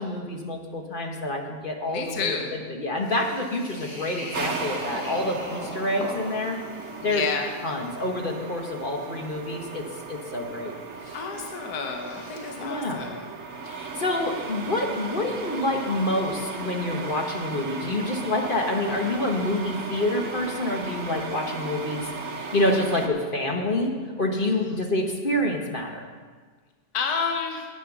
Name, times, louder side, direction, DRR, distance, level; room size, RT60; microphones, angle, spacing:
voice 1, 0.0-6.6 7.0-7.2 7.6-10.7 11.1-11.2 12.6-13.0 13.6-26.0, left 1 dB, 35° left, 2 dB, 1.2 m, -27 dB
voice 2, 1.9-2.6 7.0-7.5 11.1-13.2 26.9-27.7, left 5 dB, 75° left, 2 dB, 1.6 m, -30 dB
sound 1, 3.0-12.8, equal, 60° left, 3.5 m, -42 dB
sound 2, 4.3-23.1, right 4 dB, 55° right, 1.4 m, -36 dB
10.5 x 8.7 x 6.0 m, 1.5 s
omnidirectional pair, 1.7 m